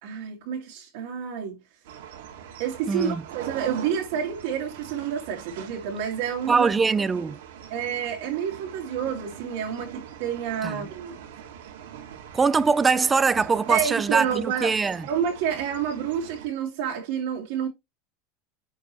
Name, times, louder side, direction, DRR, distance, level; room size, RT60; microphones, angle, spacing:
voice 1, 0.0-1.6 2.6-6.7 7.7-11.2 13.7-14.8 15.0-17.7, right 8 dB, 55° right, 2.0 m, -29 dB
sound 1, 1.8-16.5, right 9 dB, 90° right, 2.4 m, -42 dB
voice 2, 2.9-3.2 6.5-7.4 10.6-10.9 12.3-15.0, right 4 dB, 10° right, 0.3 m, -22 dB
10.5 x 4.5 x 3.1 m
supercardioid pair, 175°, 0 cm